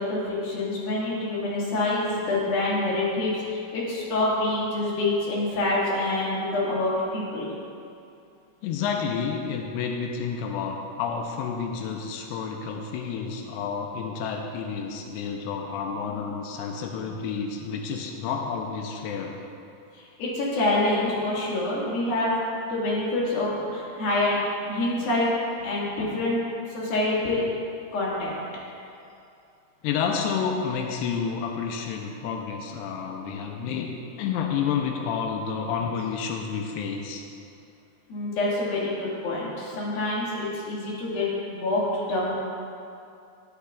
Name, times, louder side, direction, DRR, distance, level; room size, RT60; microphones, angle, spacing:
voice 1, 0.0-7.5 19.9-22.3 22.7-24.4 24.7-25.3 25.6-26.4 26.7-27.4 27.9-28.3 38.1-42.3, left 2 dB, 60° left, -6 dB, 3.3 m, -26 dB
voice 2, 8.6-19.3 29.8-33.9 34.2-37.2, left 6 dB, 90° left, 2 dB, 2.4 m, -30 dB
12.0 x 11.0 x 2.4 m, 2.6 s
omnidirectional pair, 5.3 m